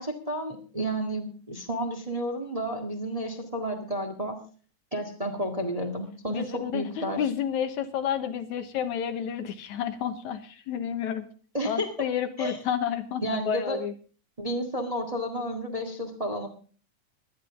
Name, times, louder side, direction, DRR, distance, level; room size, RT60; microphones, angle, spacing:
voice 1, 0.0-4.4 4.9-7.2 11.5-12.1 12.4-12.6 13.2-13.8 14.4-16.5, right 1 dB, 15° right, 4 dB, 1.6 m, -31 dB
voice 2, 6.3-11.2 11.7-13.9, left 8 dB, 75° left, 9 dB, 2.6 m, -30 dB
19.5 x 12.0 x 3.6 m, 0.41 s
omnidirectional pair, 3.4 m